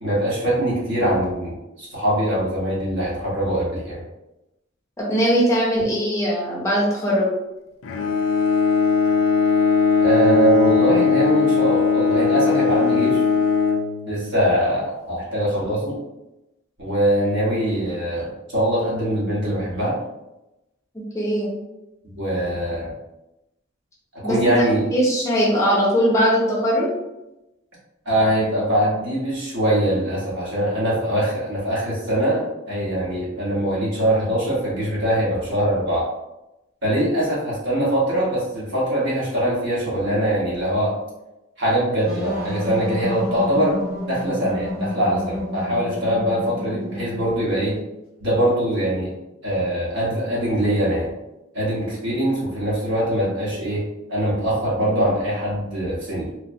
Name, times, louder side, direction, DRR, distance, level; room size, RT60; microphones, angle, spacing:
voice 1, 0.0-4.0 10.0-13.2 14.0-15.9 16.8-19.9 22.1-22.9 24.2-24.9 28.0-36.0 36.8-40.9 41.6-43.8 44.0-47.7 48.2-49.1 49.4-51.1 51.5-53.8 54.1-56.3, right 1 dB, 60° right, -7 dB, 1.2 m, -22 dB
voice 2, 5.0-7.3 21.1-21.5 24.2-24.4 24.9-26.9, equal, 15° left, -5 dB, 0.6 m, -20 dB
Bowed string instrument, 7.8-14.5, left 5 dB, 80° left, 0.4 m, -19 dB
sound 1, 42.0-47.7, equal, 35° right, 1.3 m, -30 dB
3.1 x 2.1 x 2.6 m, 0.94 s
head